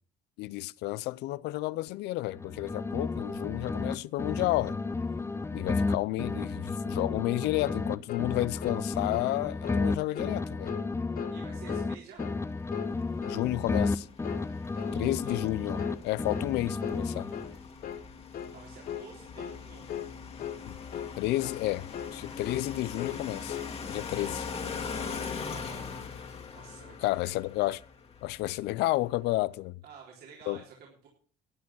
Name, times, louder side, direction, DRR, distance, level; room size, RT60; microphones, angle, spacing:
voice 1, 0.4-4.8 5.5-10.8 13.3-14.1 14.9-17.3 20.6-20.8 21.2-21.9 22.1-23.6 23.9-24.5 27.0-27.8 28.2-29.8 30.5-30.6, left 18 dB, 90° left, 0.5 m, -31 dB
sound 1, 2.3-3.9 4.2-7.9 8.2-11.9 12.2-15.9 16.2-17.6, left 3 dB, 15° left, 0.7 m, -33 dB
sound 2, 7.6-7.8 8.1-8.3 8.6-8.8 9.1-9.3 9.6-9.9 10.1-10.4 10.7-10.9 11.2-11.4 11.7-11.9 12.2-12.4 12.7-12.9 13.2-13.4 13.7-14.0 14.2-14.5 14.8-15.0 15.3-15.5 15.8-16.0 16.3-16.5 16.8-17.0 17.3-17.5 17.8-18.1 18.3-18.6 18.9-19.1 19.4-19.6 19.9-20.1 20.4-20.6 20.9-21.2 21.4-21.6 21.9-22.2 22.4-22.7 23.0-23.2 23.5-23.7, left 10 dB, 60° left, 1.2 m, -38 dB
voice 2, 11.3-12.2 14.9-15.4 18.5-19.8 24.2-24.4 25.0-26.0 26.5-27.4 28.4-28.6 29.8-31.1, right 6 dB, 75° right, 4.0 m, -51 dB
sound 3, 12.6-28.8, left 5 dB, 35° left, 1.9 m, -42 dB
12.5 x 9.4 x 6.2 m
cardioid pair, 110°, 17 cm